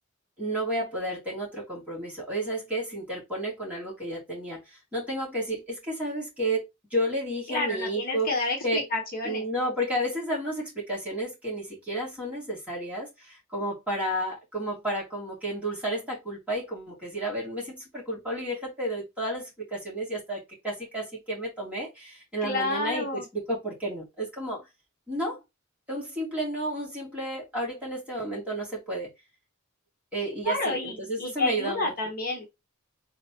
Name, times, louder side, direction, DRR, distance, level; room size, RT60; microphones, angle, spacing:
voice 1, 0.4-8.9 9.2-23.1 23.3-24.6 25.1-25.4 25.9-29.1 30.1-31.9, right 1 dB, 5° right, 3.1 m, -32 dB
voice 2, 7.5-9.4 22.4-23.2 30.2-32.5, left 2 dB, 40° left, 1.2 m, -30 dB
4.2 x 4.0 x 2.9 m
head